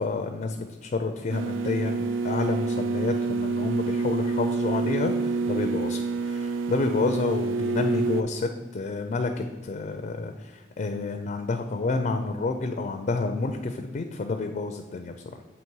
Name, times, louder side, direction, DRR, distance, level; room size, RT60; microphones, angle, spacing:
voice 1, 0.0-15.4, left 3 dB, 40° left, 6 dB, 0.4 m, -29 dB
sound 1, 1.3-8.2, right 4 dB, 85° right, 0.4 m, -27 dB
7.3 x 3.0 x 4.6 m, 1.3 s
head